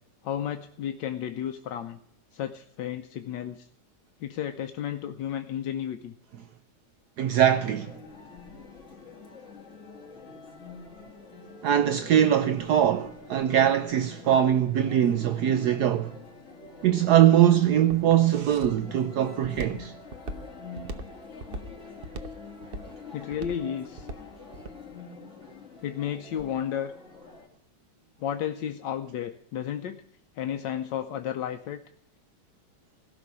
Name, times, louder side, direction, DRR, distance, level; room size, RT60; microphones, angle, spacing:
voice 1, 0.2-2.0 2.3-3.7 4.2-6.1 23.1-24.1 25.8-26.9 28.2-30.0 30.4-31.8, left 9 dB, 80° left, 1.4 m, -32 dB
voice 2, 7.2-8.0 11.6-16.2 16.8-19.9, right 10 dB, 70° right, 1.2 m, -22 dB
sound 1, 7.6-27.5, left 4 dB, 40° left, 2.9 m, -46 dB
Walk footsteps, 16.7-24.8, right 2 dB, 40° right, 0.9 m, -40 dB
16.5 x 6.1 x 9.7 m
omnidirectional pair, 1.9 m